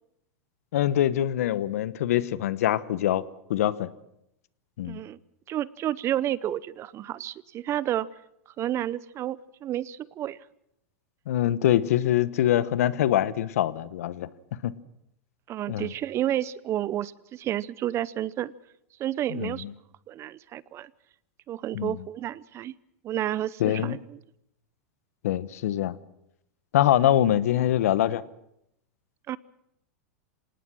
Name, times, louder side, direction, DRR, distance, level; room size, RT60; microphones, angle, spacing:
voice 1, 0.7-3.2 3.5-3.9 4.8-5.0 11.3-14.3 14.6-14.7 15.7-15.9 19.3-19.5 21.7-22.0 23.6-24.0 25.2-26.0 26.7-28.2, left 12 dB, 75° left, 17 dB, 1.1 m, -24 dB
voice 2, 4.9-5.2 5.5-8.1 8.6-10.4 15.5-18.5 19.0-19.6 20.1-20.9 21.5-22.7 23.0-24.2 29.3-29.4, right 12 dB, 35° right, 20 dB, 0.7 m, -30 dB
26.0 x 18.5 x 6.3 m, 0.82 s
hypercardioid pair, 115°, 8 cm